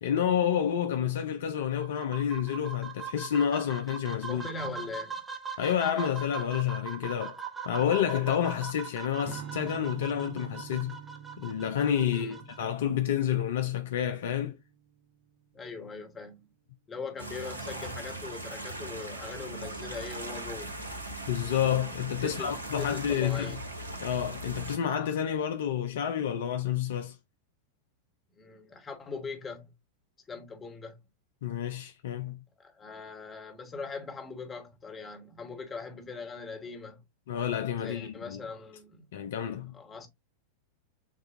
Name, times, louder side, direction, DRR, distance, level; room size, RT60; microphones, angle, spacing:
voice 1, 0.0-4.5 5.6-7.4 7.7-11.0 11.4-14.6 21.3-23.6 24.0-27.2 31.4-32.4 37.3-38.4 39.1-39.7, left 9 dB, 60° left, 0.5 m, -29 dB
sound 1, 1.6-12.6, right 5 dB, 10° right, 1.1 m, -41 dB
voice 2, 4.3-5.2 12.1-12.4 15.5-16.5 16.9-20.8 22.2-23.6 28.3-29.7 30.3-31.0 32.6-37.0 37.8-39.0 39.7-40.1, left 4 dB, 20° left, 1.3 m, -41 dB
Strum, 9.2-15.6, right 8 dB, 60° right, 1.1 m, -46 dB
sound 2, 17.2-24.8, right 1 dB, 80° right, 1.1 m, -39 dB
7.2 x 2.4 x 2.5 m
figure-of-eight pair, 90°, 0 cm